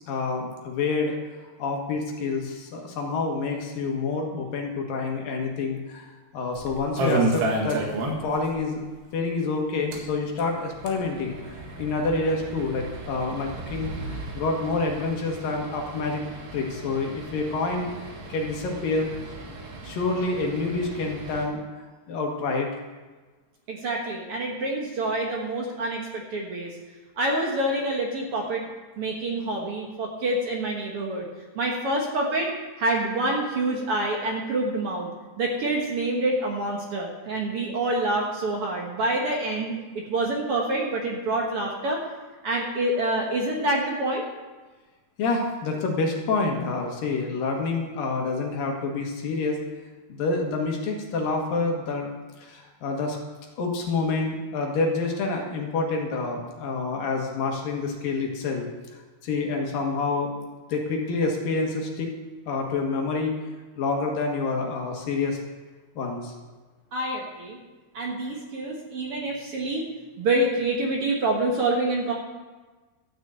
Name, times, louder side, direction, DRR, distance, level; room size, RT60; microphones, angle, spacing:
voice 1, 0.1-1.2 1.6-6.1 6.3-7.8 8.2-8.8 9.1-16.3 16.5-17.9 18.3-19.1 19.8-21.6 22.1-22.7 45.2-49.6 50.1-52.1 52.4-53.2 53.6-58.7 59.2-60.3 60.7-62.1 62.5-63.4 63.8-65.4 66.0-66.3, left 3 dB, 65° left, 1 dB, 3.0 m, -27 dB
sound 1, 6.5-8.5 8.8-8.9 9.1-9.2 9.8-21.5, right 2 dB, 85° right, 3.8 m, -33 dB
voice 2, 23.7-26.7 27.2-28.6 29.0-31.3 31.5-32.5 32.8-35.1 35.4-42.0 42.4-44.2 66.9-67.6 67.9-69.9 70.2-72.1, right 2 dB, 65° right, -1 dB, 1.4 m, -27 dB
13.5 x 6.3 x 8.0 m, 1.3 s
omnidirectional pair, 4.7 m